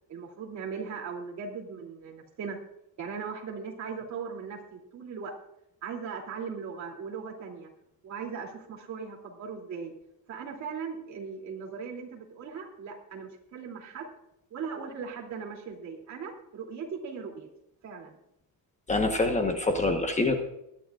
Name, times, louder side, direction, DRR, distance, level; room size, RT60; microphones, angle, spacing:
voice 1, 0.1-2.6 3.0-5.3 5.8-7.7 8.0-9.9 10.3-14.1 14.5-17.5 17.8-18.2, right 6 dB, 45° right, 0 dB, 2.9 m, -38 dB
voice 2, 18.9-20.4, left 2 dB, 20° left, 4 dB, 1.1 m, -25 dB
22.5 x 10.5 x 2.5 m, 0.81 s
cardioid pair, 165°, 38 cm